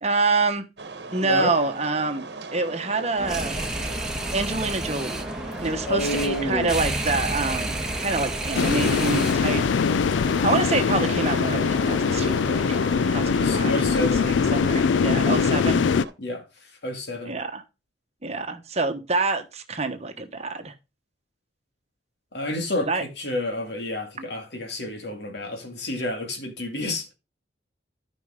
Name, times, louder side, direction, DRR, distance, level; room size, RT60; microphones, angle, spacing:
voice 1, 0.0-0.6 1.1-2.2 2.5-3.6 4.3-5.2 5.6-9.9 10.4-12.8 13.1-15.8 17.2-17.6 18.2-20.7 22.8-23.0 24.2-24.3, right 3 dB, 35° right, 1.2 m, -27 dB
sound 1, 0.8-16.1, right 3 dB, 65° right, 1.2 m, -38 dB
sound 2, 3.2-9.6, right 1 dB, 5° right, 1.7 m, -30 dB
voice 2, 5.9-6.8 13.4-14.3 16.2-16.4 16.8-17.4 22.3-27.1, left 1 dB, 65° left, 2.3 m, -29 dB
sound 3, 8.5-16.0, left 6 dB, 85° left, 0.4 m, -22 dB
13.0 x 5.4 x 3.8 m
head